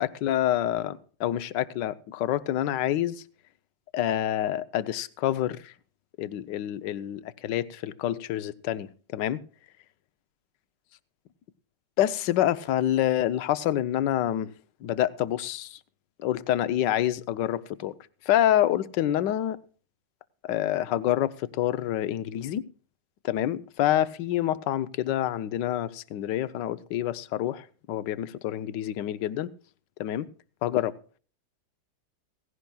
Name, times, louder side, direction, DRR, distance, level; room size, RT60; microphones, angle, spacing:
voice 1, 0.0-3.2 3.9-5.7 6.2-9.4 12.0-14.5 14.8-15.8 16.2-17.9 18.2-19.6 20.4-22.6 23.2-29.5 30.0-30.3 30.6-31.0, left 12 dB, 75° left, 1.3 m, -27 dB
17.0 x 16.0 x 2.3 m
omnidirectional pair, 2.0 m